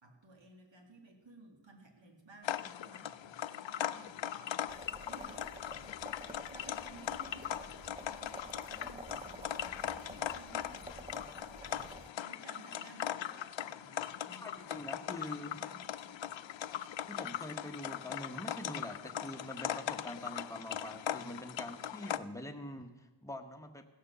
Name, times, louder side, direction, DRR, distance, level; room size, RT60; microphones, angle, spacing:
voice 1, 0.0-5.5 6.5-16.3, right 2 dB, 65° right, 2 dB, 2.3 m, -57 dB
sound 1, 2.4-22.2, left 10 dB, 65° left, 0.5 m, -40 dB
sound 2, 4.7-12.1, right 2 dB, 15° right, 0.5 m, -50 dB
voice 2, 14.3-15.5 17.1-23.8, left 1 dB, 5° left, 4 dB, 1.1 m, -45 dB
16.0 x 6.6 x 6.8 m, 1.2 s
wide cardioid pair, 65°, 49 cm